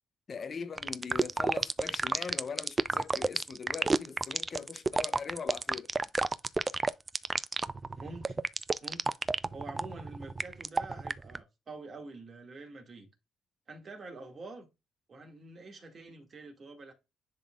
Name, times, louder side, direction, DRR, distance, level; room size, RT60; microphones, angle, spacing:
voice 1, 0.3-5.9, left 5 dB, 45° left, 0.7 m, -41 dB
sound 1, 0.8-11.4, right 3 dB, 25° right, 0.4 m, -30 dB
voice 2, 8.0-8.4 8.8-9.2 9.5-13.1 13.7-14.7 15.1-16.9, right 3 dB, 45° right, 2.2 m, -47 dB
10.5 x 3.8 x 2.5 m
cardioid pair, 90°, 0 cm